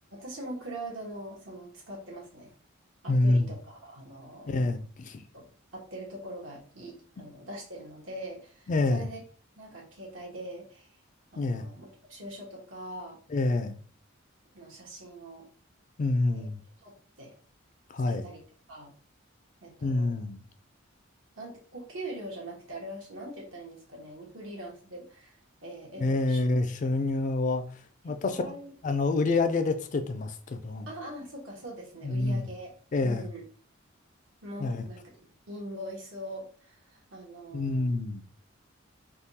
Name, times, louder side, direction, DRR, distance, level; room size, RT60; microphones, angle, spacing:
voice 1, 0.1-2.5 3.0-4.6 5.3-5.5 5.7-9.2 9.6-10.9 11.3-13.2 14.5-15.4 16.3-16.5 16.8-17.3 18.1-18.4 18.7-18.9 19.6-20.2 21.4-25.3 25.6-26.5 28.1-28.7 30.9-32.7 33.0-33.4 34.4-35.0 35.5-37.9, right 1 dB, 80° right, 1.2 m, -42 dB
voice 2, 3.1-3.5 4.5-5.2 8.7-9.0 11.4-11.7 13.3-13.8 16.0-16.6 17.9-18.3 19.8-20.4 26.0-27.6 28.0-28.4 28.8-30.9 32.0-32.5 32.9-33.3 34.6-34.8 37.5-38.2, left 2 dB, 40° left, 0.3 m, -27 dB
3.5 x 2.3 x 2.7 m
head